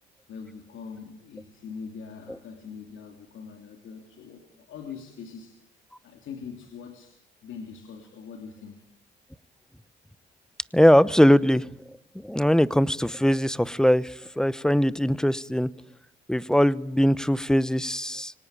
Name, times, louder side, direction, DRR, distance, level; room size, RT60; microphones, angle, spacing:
voice 1, 0.3-5.7 6.0-8.8, left 6 dB, 75° left, 4 dB, 3.2 m, -42 dB
voice 2, 10.7-11.7 12.2-15.7 16.3-18.3, equal, 5° left, 18 dB, 0.9 m, -21 dB
24.5 x 18.5 x 9.0 m, 0.77 s
cardioid pair, 90°, 20 cm